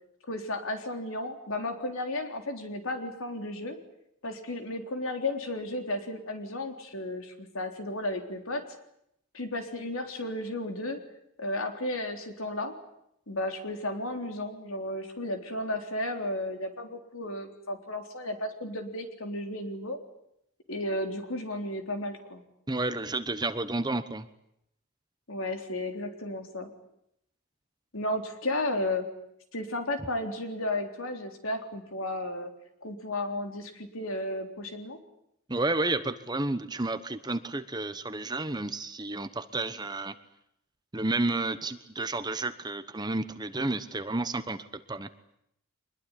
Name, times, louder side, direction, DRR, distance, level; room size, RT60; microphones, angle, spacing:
voice 1, 0.3-3.8 4.2-8.6 9.3-11.0 11.4-12.7 13.3-20.0 20.7-22.4 25.3-26.7 27.9-29.1 29.5-32.5 32.8-35.0, left 1 dB, 70° left, 5 dB, 3.7 m, -33 dB
voice 2, 22.7-24.3 35.5-40.1 40.9-45.1, right 2 dB, 20° right, 11 dB, 1.0 m, -31 dB
24.5 x 21.5 x 9.9 m, 0.79 s
head